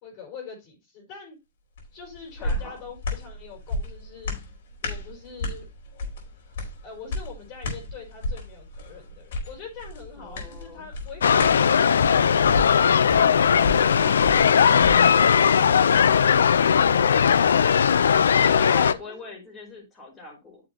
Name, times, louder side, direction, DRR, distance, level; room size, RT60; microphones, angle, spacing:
voice 1, 0.0-1.4 1.9-4.5 4.8-5.7 6.8-16.4 18.7-19.3, left 5 dB, 40° left, 0 dB, 4.9 m, -44 dB
sound 1, 1.8-15.4 15.8-15.9, left 2 dB, 65° left, 4.6 m, -34 dB
voice 2, 2.4-2.8 10.2-10.9 18.1-20.6, left 2 dB, 20° left, 1 dB, 5.0 m, -41 dB
sound 2, 11.2-18.9, left 7 dB, 90° left, 0.6 m, -18 dB
10.0 x 6.9 x 2.9 m, 0.22 s
hypercardioid pair, 145°, 0 cm